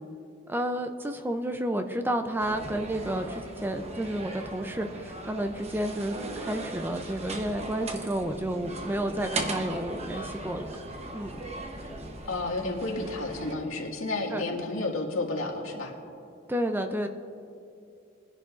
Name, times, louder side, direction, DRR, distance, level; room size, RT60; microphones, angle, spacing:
voice 1, 0.5-10.6 11.1-11.4 14.3-14.4 16.5-17.1, right 1 dB, 10° right, 6 dB, 0.4 m, -31 dB
sound 1, 2.4-13.5, right 2 dB, 30° right, 0.9 m, -38 dB
voice 2, 12.3-15.9, left 2 dB, 85° left, 0 dB, 2.0 m, -31 dB
22.0 x 10.5 x 2.5 m, 2.6 s
head